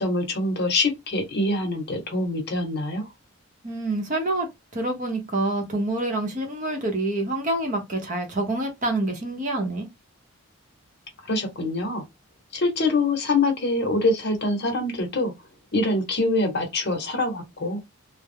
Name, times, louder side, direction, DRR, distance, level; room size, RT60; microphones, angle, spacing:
voice 1, 0.0-3.1 11.3-12.0 12.5-15.3 15.7-17.8, left 2 dB, 50° left, 0.8 m, -24 dB
voice 2, 3.6-4.5 4.7-9.9, right 2 dB, 35° right, 0.7 m, -27 dB
2.2 x 2.0 x 3.3 m
head